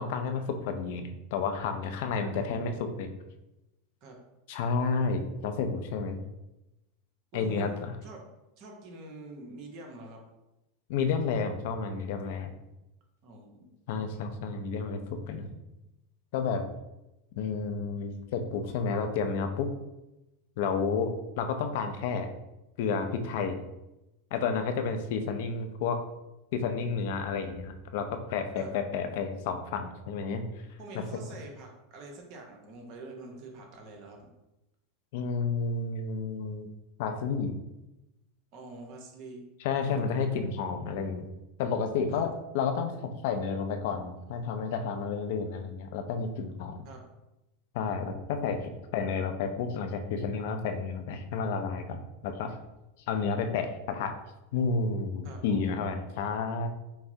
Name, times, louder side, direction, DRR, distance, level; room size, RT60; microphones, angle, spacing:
voice 1, 0.0-3.1 4.5-6.2 7.3-7.9 10.9-12.5 13.9-15.5 16.3-16.6 17.4-19.7 20.6-22.3 22.8-23.6 24.3-26.0 26.5-30.4 35.1-36.7 37.0-37.5 39.6-41.3 41.6-42.9 43.2-46.8 47.7-52.5 53.1-54.1 54.5-56.7, left 5 dB, 65° left, 7 dB, 0.5 m, -31 dB
voice 2, 7.3-8.2 8.6-10.2 13.2-13.7 28.5-28.7 30.8-34.2 38.5-39.4 42.1-42.2 46.8-47.0 55.2-55.7, right 2 dB, 50° right, 1 dB, 0.9 m, -46 dB
5.7 x 2.0 x 2.7 m, 0.95 s
hypercardioid pair, 110°, 0 cm